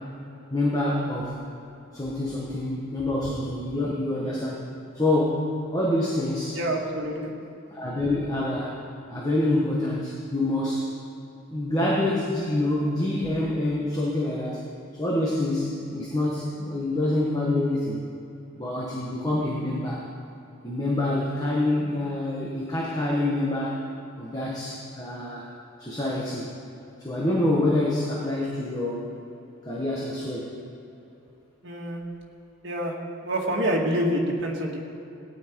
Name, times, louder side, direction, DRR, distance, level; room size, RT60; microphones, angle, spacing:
voice 1, 0.5-1.4 1.9-4.6 4.9-6.6 7.7-8.8 9.1-10.9 11.5-14.6 14.9-18.0 18.6-20.0 20.6-23.8 24.2-25.5 25.8-26.5 27.0-29.1 29.6-30.5, left 1 dB, 20° left, -5 dB, 1.5 m, -26 dB
voice 2, 6.5-7.3 31.6-32.0 32.6-32.9 33.2-34.8, equal, 55° right, -2 dB, 2.0 m, -26 dB
17.5 x 10.0 x 4.7 m, 2.9 s
head